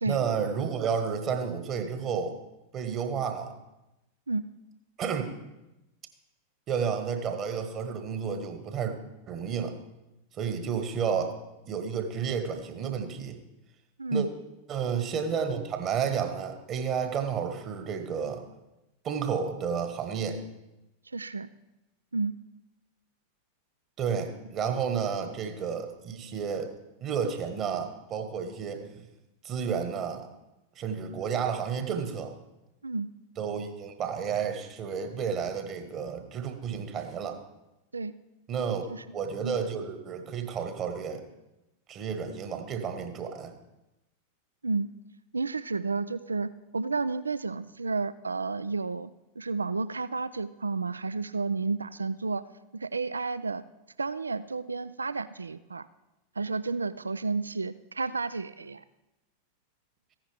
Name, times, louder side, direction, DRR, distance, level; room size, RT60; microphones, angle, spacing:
voice 1, 0.1-2.4 2.7-3.5 5.0-5.4 6.7-8.9 9.3-9.8 10.4-11.4 11.6-13.4 14.1-14.3 14.7-18.4 19.0-20.4 24.0-26.7 27.0-29.0 29.4-30.3 30.7-32.3 33.4-37.4 38.5-38.8 39.1-41.2 41.9-43.5, right 6 dB, 30° right, 7 dB, 1.4 m, -31 dB
voice 2, 21.1-21.5 22.1-22.3 32.8-33.1 37.9-38.1 38.9-39.0 39.4-39.6 44.6-44.9 45.3-49.1 49.4-52.4 52.7-53.6 54.0-55.9 56.4-58.8, right 3 dB, 75° right, 16 dB, 0.3 m, -31 dB
15.0 x 10.5 x 3.4 m, 0.97 s
figure-of-eight pair, 90°, 0 cm